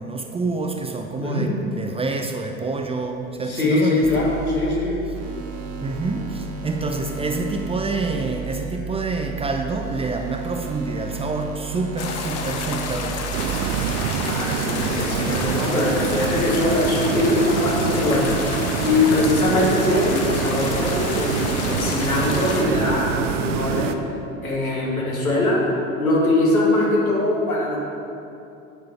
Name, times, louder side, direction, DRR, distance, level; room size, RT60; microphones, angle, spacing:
voice 1, 0.0-4.2 5.8-13.6 19.4-19.6, right 3 dB, 15° right, 4 dB, 0.6 m, -27 dB
voice 2, 1.2-1.5 3.4-5.0 14.3-23.9 24.4-25.6 26.0-27.8, left 2 dB, 75° left, -3 dB, 2.5 m, -22 dB
sound 1, 4.0-14.0, right 6 dB, 35° right, 1.2 m, -33 dB
sound 2, 12.0-22.6, left 5 dB, 35° left, 1.2 m, -30 dB
sound 3, 13.3-23.9, right 7 dB, 55° right, 0.8 m, -26 dB
9.4 x 8.0 x 5.8 m, 2.8 s
figure-of-eight pair, 75°, 43 cm